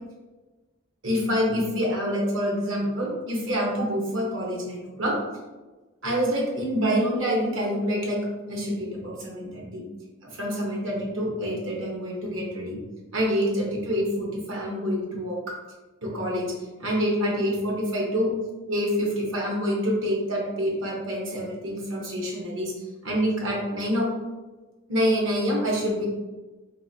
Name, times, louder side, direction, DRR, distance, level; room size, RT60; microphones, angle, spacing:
voice 1, 1.0-5.2 6.0-9.8 10.2-12.8 13.1-15.6 16.0-16.5 16.8-18.3 18.7-24.1 24.9-26.1, equal, 75° right, -2 dB, 1.0 m, -27 dB
3.8 x 2.9 x 2.7 m, 1.2 s
head